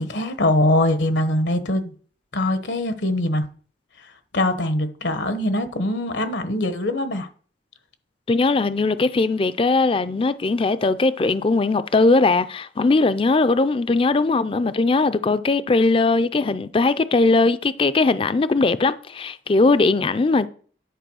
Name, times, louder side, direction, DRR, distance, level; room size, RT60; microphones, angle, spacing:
voice 1, 0.0-1.9 2.3-3.4 4.3-7.3, left 1 dB, 80° left, 1.1 m, -22 dB
voice 2, 8.3-20.5, left 3 dB, 30° left, 0.4 m, -19 dB
10.0 x 4.7 x 6.2 m
head